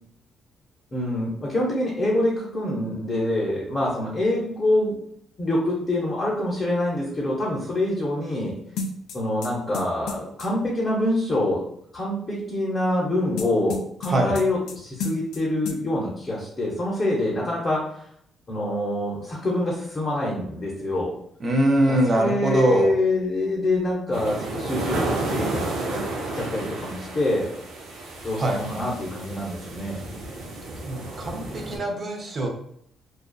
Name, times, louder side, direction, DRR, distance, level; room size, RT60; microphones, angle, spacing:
voice 1, 0.9-5.0 5.4-8.6 9.1-11.6 11.9-18.0 18.5-21.1 21.9-26.1 26.3-27.5 28.2-30.0, left 1 dB, 35° left, -5 dB, 0.7 m, -25 dB
sound 1, 8.8-10.5 13.4-14.8 15.0-15.4 15.7-15.8, left 3 dB, 80° left, 0.3 m, -32 dB
voice 2, 21.4-22.9 27.1-27.2 28.4-28.6 30.8-32.5, right 1 dB, 40° right, 2 dB, 0.5 m, -22 dB
sound 2, 24.1-31.8, right 2 dB, 90° right, 0.5 m, -32 dB
2.5 x 2.2 x 2.3 m, 0.67 s
cardioid pair, 90°, 0 cm